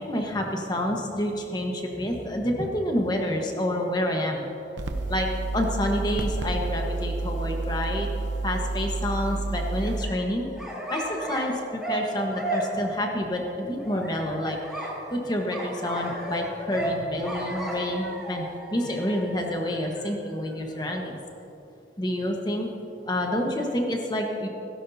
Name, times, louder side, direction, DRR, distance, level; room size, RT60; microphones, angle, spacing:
voice 1, 0.0-4.4 5.1-5.3 5.5-8.1 8.4-10.4 10.9-21.2 22.0-22.7 23.0-24.5, left 1 dB, 25° left, 1 dB, 1.4 m, -28 dB
sound 1, 4.8-10.0, right 3 dB, 85° right, 0.9 m, -29 dB
sound 2, 9.7-11.5 11.8-12.9 13.8-21.0, right 1 dB, ahead, 3.4 m, -35 dB
17.0 x 16.5 x 2.8 m, 2.9 s
head